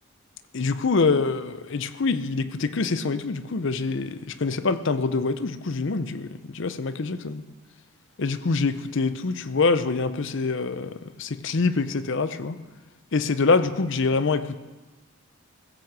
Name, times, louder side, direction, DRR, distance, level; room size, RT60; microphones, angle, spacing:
voice 1, 0.5-7.4 8.2-10.9 11.2-12.5 13.1-14.6, left 4 dB, 55° left, 12 dB, 0.6 m, -25 dB
15.0 x 6.1 x 7.3 m, 1.2 s
head